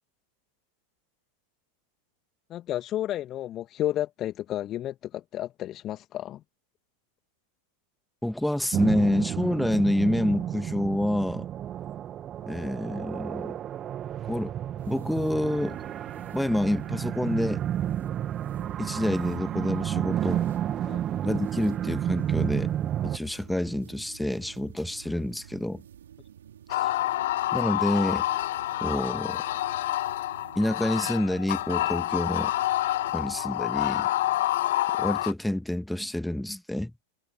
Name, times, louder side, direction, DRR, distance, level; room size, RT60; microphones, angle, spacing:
voice 1, 2.5-6.4 20.9-21.0, left 12 dB, 30° left, 2.0 m, -32 dB
voice 2, 8.2-11.5 12.4-13.6 14.3-14.5 14.9-15.8 16.3-17.6 18.8-20.5 21.2-22.7 23.0-25.8 26.8-26.9 27.5-28.2 28.8-29.4 30.6-32.5 33.1-34.1 35.0-36.9, left 1 dB, 5° left, 2.0 m, -27 dB
sound 1, 8.7-23.2, right 10 dB, 30° right, 1.7 m, -31 dB
sound 2, 14.8-33.5, right 10 dB, 65° right, 3.7 m, -50 dB
sound 3, 26.7-35.3, left 15 dB, 55° left, 0.5 m, -28 dB
figure-of-eight pair, 90°, 0 cm